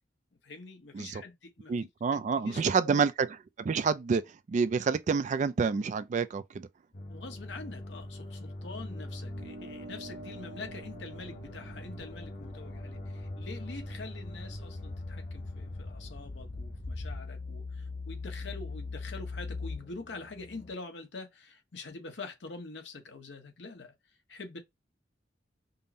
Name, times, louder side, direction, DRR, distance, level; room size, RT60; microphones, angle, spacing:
voice 1, 0.4-3.0 7.1-23.9 24.3-24.6, left 3 dB, 85° left, 1.0 m, -45 dB
voice 2, 1.7-3.1 3.6-6.7, right 5 dB, 45° right, 0.3 m, -28 dB
sound 1, 6.9-20.7, left 2 dB, 45° left, 0.8 m, -41 dB
sound 2, 9.3-14.1, right 1 dB, 65° right, 0.8 m, -50 dB
5.2 x 2.1 x 2.6 m
head